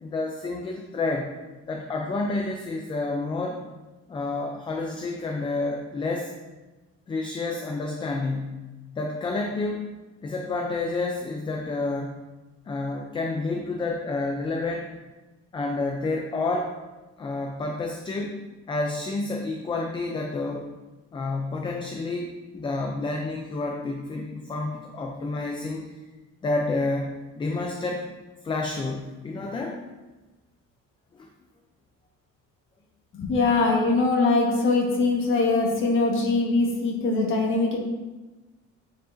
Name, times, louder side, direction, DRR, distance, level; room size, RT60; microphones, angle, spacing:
voice 1, 0.0-1.3 1.7-3.6 4.1-6.3 7.1-8.6 9.0-9.9 10.2-12.2 12.7-14.9 15.5-16.7 17.2-18.4 18.7-20.7 21.1-25.9 26.4-28.1 28.4-29.8 31.1-31.3, left 3 dB, 15° left, 1 dB, 0.4 m, -29 dB
voice 2, 33.1-37.8, left 3 dB, 45° left, -1 dB, 1.3 m, -22 dB
9.1 x 4.7 x 2.6 m, 1.2 s
cardioid pair, 175°, 30 cm